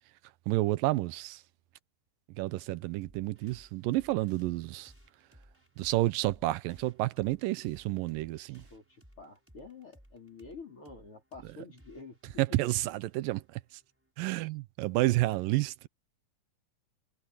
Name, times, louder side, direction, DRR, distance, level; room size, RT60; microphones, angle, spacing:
voice 1, 0.5-1.4 2.4-4.9 5.8-8.6 12.4-13.8 14.2-15.9, right 18 dB, 85° right, 2.4 m, -30 dB
sound 1, 3.0-14.1, equal, 5° right, 5.2 m, -60 dB
voice 2, 8.3-12.2 12.5-12.6, left 4 dB, 40° left, 5.1 m, -49 dB
omnidirectional pair, 4.0 m